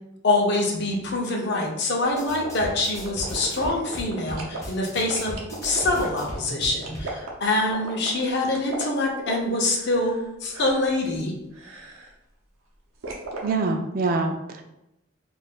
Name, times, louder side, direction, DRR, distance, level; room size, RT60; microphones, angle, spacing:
voice 1, 0.2-11.3, left 2 dB, 55° left, 0 dB, 0.6 m, -25 dB
sound 1, 2.0-4.6 5.1-10.3 10.5-10.9 11.5-12.1 13.0-13.5, right 3 dB, 90° right, 0.7 m, -37 dB
sound 2, 2.1-7.1, equal, 15° left, 0.5 m, -38 dB
voice 2, 13.4-14.6, right 3 dB, 45° right, 4 dB, 0.3 m, -25 dB
2.5 x 2.3 x 3.5 m, 0.87 s
head